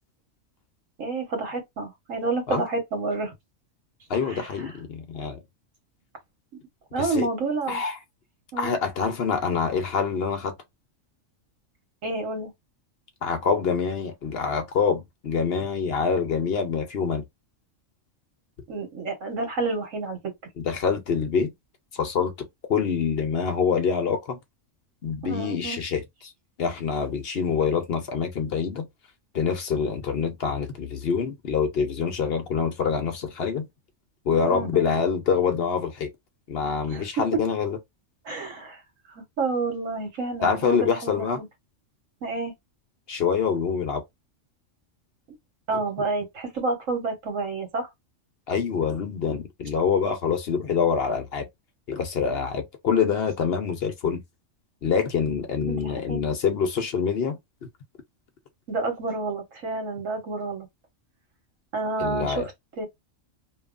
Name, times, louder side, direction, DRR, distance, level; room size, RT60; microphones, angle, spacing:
voice 1, 1.0-3.3 4.3-4.7 6.9-7.8 8.5-8.8 12.0-12.5 18.7-20.2 25.2-25.8 34.4-34.9 36.9-37.0 37.3-37.4 38.2-38.8 39.1-41.5 42.2-42.5 45.7-47.9 55.7-56.2 58.7-60.7 61.7-62.5 62.8-62.9, right 3 dB, 90° right, 1.5 m, -29 dB
voice 2, 4.1-5.4 7.0-7.3 7.7-8.0 8.6-10.5 13.2-17.3 20.6-21.5 21.9-24.4 25.0-26.3 26.6-28.9 29.3-33.7 34.3-36.1 36.5-37.8 40.4-41.4 43.1-44.0 48.5-51.5 51.9-54.2 54.8-57.4 62.0-62.5, left 6 dB, 60° left, 0.8 m, -25 dB
2.9 x 2.3 x 2.4 m
omnidirectional pair, 1.3 m